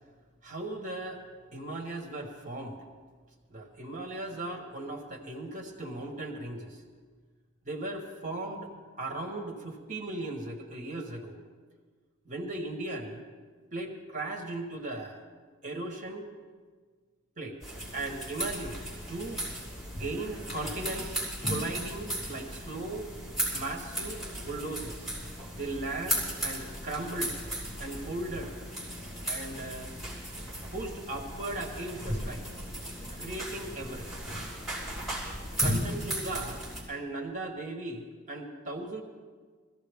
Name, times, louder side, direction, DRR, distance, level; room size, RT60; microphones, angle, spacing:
voice 1, 0.4-1.2 1.5-2.8 3.5-6.8 7.6-8.7 9.0-11.4 12.3-13.2 13.7-15.2 15.6-16.3 17.4-17.6 17.9-18.8 19.1-19.5 19.9-23.1 23.5-25.1 25.5-27.4 27.8-28.5 29.2-29.9 30.7-32.5 33.1-34.2 35.6-39.0, right 2 dB, 40° right, 3 dB, 1.2 m, -37 dB
sound 1, 17.6-36.8, equal, ahead, 3.7 m, -36 dB
21.0 x 14.5 x 3.5 m, 1.6 s
head